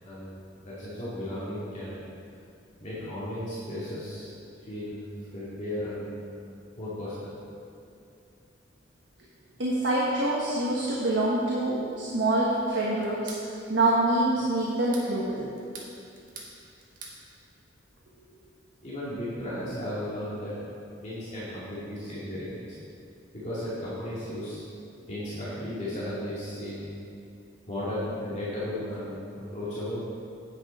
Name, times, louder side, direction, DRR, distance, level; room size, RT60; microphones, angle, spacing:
voice 1, 0.0-2.0 2.8-4.3 4.6-6.2 6.8-7.3 18.8-20.6 21.0-22.6 23.3-24.6 25.1-27.0 27.7-30.0, left 1 dB, 40° left, -10 dB, 2.2 m, -35 dB
voice 2, 9.6-13.3 13.7-15.4, right 1 dB, 65° right, -5 dB, 1.3 m, -25 dB
sound 1, 13.0-13.5 14.7-15.1 15.6-16.5 16.8-17.2, right 4 dB, 45° right, 1.5 m, -44 dB
9.5 x 8.5 x 4.4 m, 2.5 s
head